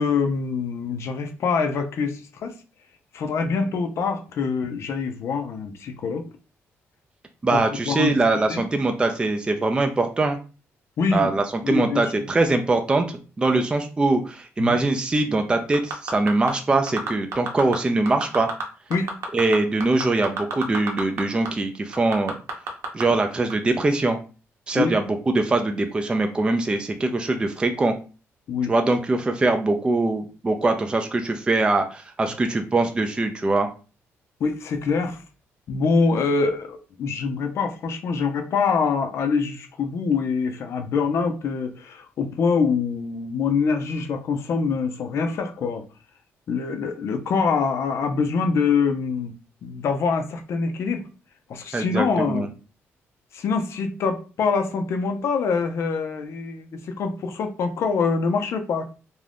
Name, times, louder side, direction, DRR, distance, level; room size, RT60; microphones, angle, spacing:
voice 1, 0.0-2.5 3.1-6.3 7.5-8.1 8.5-8.6 11.0-11.3 11.6-12.3 14.6-14.8 18.9-19.1 24.8-24.9 28.5-28.7 34.4-35.2 35.7-45.8 46.5-49.3 49.6-51.0 51.5-52.5 53.3-58.9, left 5 dB, 65° left, 0.5 m, -24 dB
voice 2, 7.4-10.4 11.1-18.5 19.3-22.3 22.9-24.2 24.7-27.9 28.7-33.7 51.7-52.5, right 2 dB, 20° right, 0.4 m, -22 dB
sound 1, 15.7-16.5 16.9-17.8 18.1-18.6 18.9-21.2 21.5-21.6 21.9-23.0 23.5-23.6, right 4 dB, 70° right, 0.7 m, -29 dB
2.6 x 2.3 x 3.3 m
cardioid pair, 110°, 5 cm